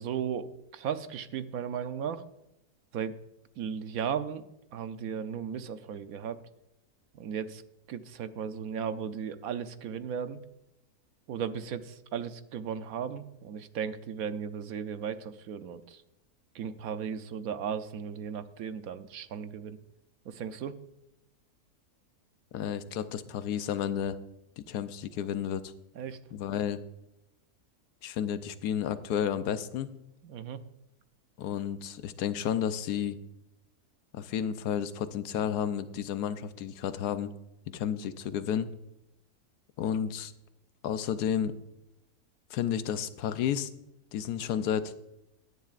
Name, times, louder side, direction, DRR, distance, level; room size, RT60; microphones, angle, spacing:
voice 1, 0.0-2.2 2.9-3.2 3.6-4.4 4.7-6.4 7.1-7.6 7.9-10.4 11.3-16.0 16.5-19.8 20.3-20.8 26.0-26.2 30.2-30.6, right 7 dB, 70° right, 11 dB, 1.1 m, -36 dB
voice 2, 22.5-24.2 24.7-25.7 26.3-26.8 28.0-29.9 31.4-33.2 34.1-37.3 37.7-38.7 39.8-40.3 40.8-41.5 42.5-43.7 44.1-44.9, left 9 dB, 90° left, 12 dB, 1.2 m, -31 dB
16.5 x 10.5 x 2.5 m, 0.89 s
omnidirectional pair, 1.6 m